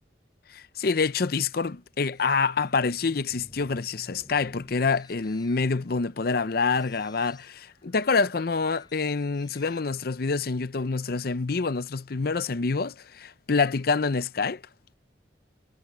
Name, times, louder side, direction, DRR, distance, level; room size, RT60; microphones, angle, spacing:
voice 1, 0.5-14.6, left 4 dB, 55° left, 0.6 m, -26 dB
sound 1, 2.1-9.8, left 1 dB, 25° left, 7.6 m, -54 dB
head